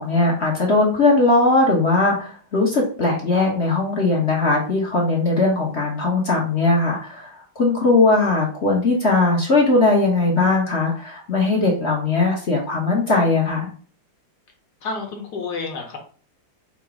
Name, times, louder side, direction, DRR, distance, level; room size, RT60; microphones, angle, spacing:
voice 1, 0.0-13.7, left 3 dB, 45° left, -2 dB, 1.0 m, -19 dB
voice 2, 14.8-16.0, left 4 dB, 60° left, 2 dB, 1.4 m, -29 dB
4.0 x 2.8 x 4.8 m, 0.41 s
omnidirectional pair, 2.2 m